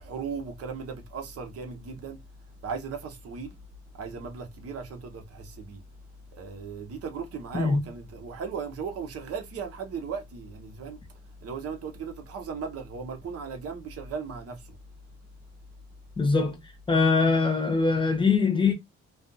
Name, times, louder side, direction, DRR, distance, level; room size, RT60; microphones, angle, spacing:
voice 1, 0.0-2.2 2.5-3.5 3.9-5.8 6.3-14.8, right 5 dB, 50° right, 0.8 m, -37 dB
voice 2, 16.2-18.7, left 4 dB, 15° left, 0.9 m, -23 dB
2.5 x 2.4 x 2.5 m
cardioid pair, 90°, 30 cm